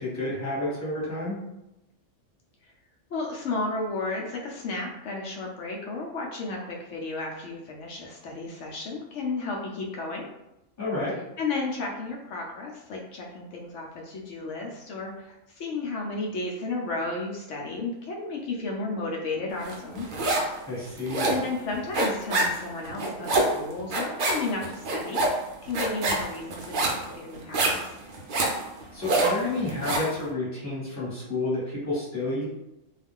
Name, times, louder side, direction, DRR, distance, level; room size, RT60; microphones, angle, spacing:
voice 1, 0.0-1.4 10.8-11.1 20.7-21.3 28.9-32.5, left 2 dB, 15° left, -8 dB, 1.1 m, -30 dB
voice 2, 3.1-10.3 11.4-20.1 21.3-25.2 25.7-27.7, left 3 dB, 70° left, -1 dB, 0.9 m, -33 dB
sound 1, 19.7-20.6 20.8-30.1, right 2 dB, 60° right, 0.5 m, -26 dB
2.3 x 2.3 x 3.5 m, 0.90 s
omnidirectional pair, 1.4 m